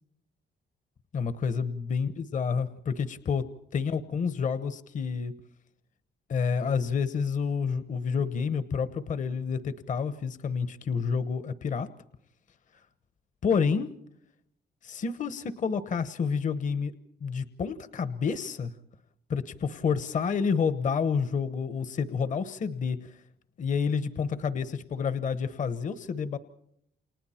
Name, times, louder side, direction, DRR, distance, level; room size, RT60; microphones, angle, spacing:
voice 1, 1.1-3.4 3.7-5.4 6.3-11.9 13.4-13.9 14.8-16.9 17.2-18.7 19.3-23.2 23.6-26.4, left 6 dB, 50° left, 12 dB, 1.1 m, -29 dB
30.0 x 27.5 x 4.4 m, 0.73 s
cardioid pair, 135°, 17 cm